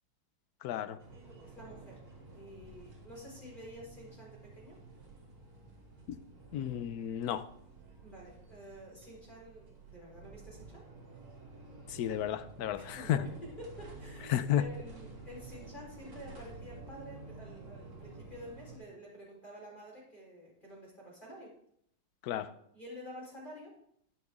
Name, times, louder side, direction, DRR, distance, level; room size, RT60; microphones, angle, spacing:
voice 1, 0.6-1.0 6.5-7.5 11.9-13.3 14.3-14.6 22.2-22.5, left 11 dB, 65° left, 11 dB, 0.9 m, -32 dB
sound 1, 1.0-18.8, right 3 dB, 65° right, 3.0 m, -51 dB
voice 2, 1.4-2.0 2.3-4.8 8.0-10.9 12.8-21.5 22.7-23.7, equal, 25° left, -4 dB, 4.4 m, -49 dB
12.5 x 9.7 x 3.6 m, 0.70 s
omnidirectional pair, 2.2 m